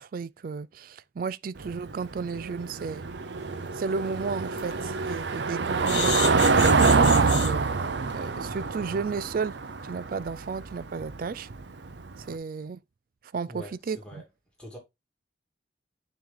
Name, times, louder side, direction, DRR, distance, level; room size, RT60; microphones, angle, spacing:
voice 1, 0.0-3.0 3.7-7.7 8.1-9.6 9.8-11.5 12.3-12.8 13.3-14.2, right 5 dB, 55° right, 0.4 m, -33 dB
Car passing by / Engine, 1.6-12.2, right 4 dB, 85° right, 0.7 m, -25 dB
sound 1, 3.5-3.6 4.1-4.2 4.5-4.7 5.9-7.5 8.1-8.3 8.6-8.7 9.0-9.1, left 6 dB, 75° left, 1.7 m, -31 dB
voice 2, 13.5-14.2 14.6-14.8, equal, 5° left, 2.3 m, -43 dB
9.3 x 3.2 x 3.7 m
head